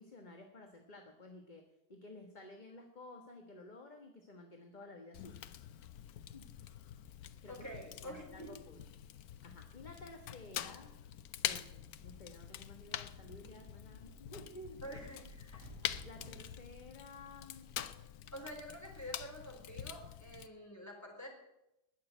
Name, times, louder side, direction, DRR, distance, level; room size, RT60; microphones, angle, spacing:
voice 1, 0.0-5.4 6.3-6.5 7.4-7.6 8.0-8.9 9.4-11.0 11.4-14.8 16.0-17.7, left 2 dB, 30° left, 4 dB, 1.4 m, -53 dB
Fire, 5.1-20.5, left 11 dB, 70° left, 1.2 m, -45 dB
voice 2, 7.5-8.5 14.8-15.7 18.3-21.3, equal, 10° left, 0 dB, 4.1 m, -48 dB
sound 1, 11.7-18.3, equal, 85° right, 4.3 m, -58 dB
20.0 x 6.8 x 9.2 m, 0.88 s
omnidirectional pair, 1.7 m